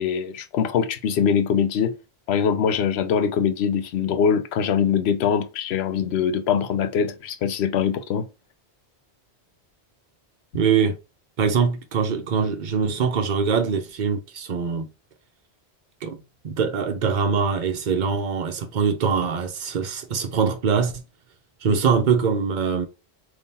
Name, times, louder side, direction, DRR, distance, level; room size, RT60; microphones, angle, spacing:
voice 1, 0.0-1.9 2.3-8.3, left 7 dB, 75° left, 0.8 m, -23 dB
voice 2, 10.5-11.0 11.4-14.9 16.0-16.2 16.4-21.0 21.6-22.9, right 6 dB, 50° right, 0.8 m, -23 dB
3.6 x 2.9 x 4.1 m
omnidirectional pair, 1.1 m